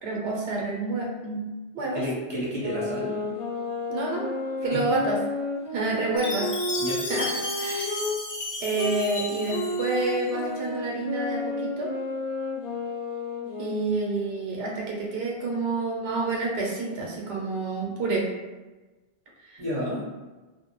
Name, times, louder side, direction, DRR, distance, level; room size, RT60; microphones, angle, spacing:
voice 1, 0.0-1.4 1.7-2.0 3.9-4.3 4.6-5.2 5.7-6.5 7.1-7.3 7.6-7.9 8.6-11.9 13.6-18.3 19.5-19.6, right 2 dB, 90° right, -2 dB, 0.9 m, -28 dB
voice 2, 1.9-3.1 4.7-4.8 6.8-7.0 19.6-20.0, equal, 25° right, -7 dB, 0.8 m, -30 dB
sound 1, 2.6-8.1 8.7-14.3, left 2 dB, 75° left, 0.9 m, -32 dB
Chime, 6.2-10.3, left 2 dB, 40° left, 0.3 m, -33 dB
2.2 x 2.0 x 2.9 m, 1.2 s
omnidirectional pair, 1.0 m